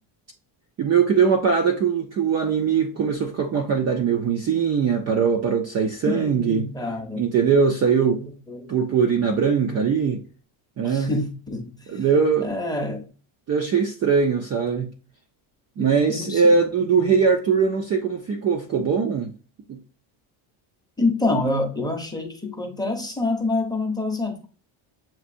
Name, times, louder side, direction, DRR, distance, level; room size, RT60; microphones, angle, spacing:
voice 1, 0.8-6.6 7.2-8.2 8.7-10.2 10.8-11.1 11.9-12.5 13.5-14.9 15.8-19.3 19.7-19.8, right 6 dB, 35° right, 0.4 m, -21 dB
voice 2, 6.1-7.2 8.1-8.7 9.7-9.8 10.8-12.0 12.4-13.1 15.8-16.6 17.0-17.2 21.0-24.5, left 2 dB, 10° left, 0.7 m, -27 dB
7.2 x 2.5 x 2.5 m
cardioid pair, 145°, 50 cm